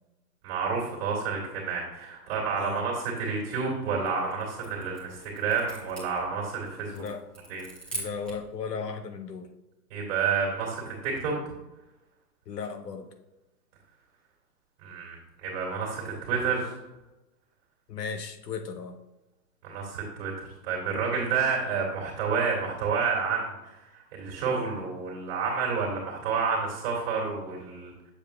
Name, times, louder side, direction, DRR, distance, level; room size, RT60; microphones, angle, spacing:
voice 1, 0.4-7.0 7.5-7.6 9.9-11.3 14.8-16.7 19.6-23.5 23.9-27.9, right 5 dB, 40° right, -4 dB, 2.0 m, -29 dB
sound 1, 3.8-8.5, right 2 dB, ahead, 0.9 m, -43 dB
voice 2, 6.9-7.2 7.9-9.5 12.5-13.0 17.9-18.9, left 5 dB, 85° left, 6 dB, 1.0 m, -36 dB
7.4 x 6.7 x 2.2 m, 1.0 s
hypercardioid pair, 150°, 47 cm